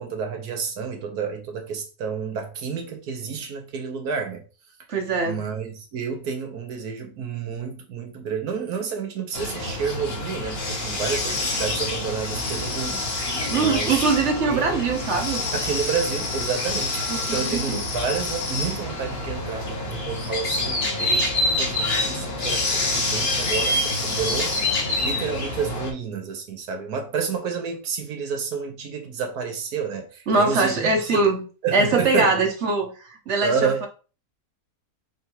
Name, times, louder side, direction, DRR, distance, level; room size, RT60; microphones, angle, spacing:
voice 1, 0.0-4.4 5.2-13.0 13.5-14.0 14.4-14.8 15.5-21.3 21.6-24.5 25.0-31.2 31.6-32.3 33.4-33.8, right 6 dB, 90° right, 1.5 m, -30 dB
voice 2, 4.9-5.4 13.5-15.5 17.1-17.8 30.3-31.4 31.7-33.9, right 3 dB, 55° right, 1.0 m, -22 dB
sound 1, 9.3-25.9, left 2 dB, 45° left, 1.2 m, -26 dB
5.2 x 3.4 x 2.9 m
omnidirectional pair, 1.6 m